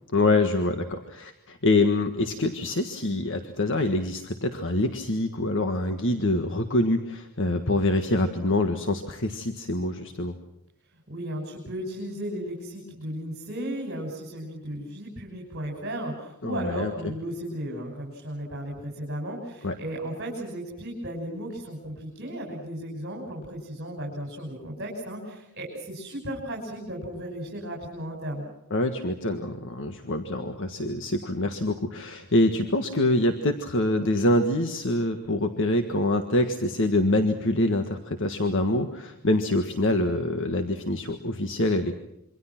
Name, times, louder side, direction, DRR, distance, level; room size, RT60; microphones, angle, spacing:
voice 1, 0.1-10.3 16.4-17.1 19.6-19.7 28.7-42.0, left 1 dB, 60° left, 6 dB, 1.6 m, -25 dB
voice 2, 11.1-28.5, right 1 dB, 50° right, -1 dB, 6.5 m, -35 dB
27.0 x 24.5 x 6.0 m, 0.85 s
head